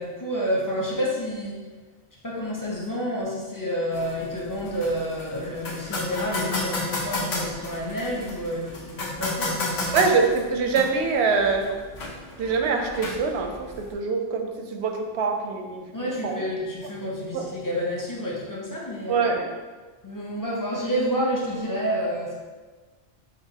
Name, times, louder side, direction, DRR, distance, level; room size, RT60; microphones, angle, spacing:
voice 1, 0.0-1.6 2.2-9.9 15.9-19.4 20.0-22.4, equal, 25° left, -4 dB, 0.6 m, -29 dB
sound 1, 3.9-13.9, left 2 dB, 85° left, 1.0 m, -33 dB
voice 2, 9.9-11.7 12.4-15.8 16.2-16.4 17.3-17.5 19.1-19.5, right 4 dB, 85° right, 4 dB, 0.8 m, -24 dB
5.2 x 2.5 x 2.8 m, 1.3 s
omnidirectional pair, 1.1 m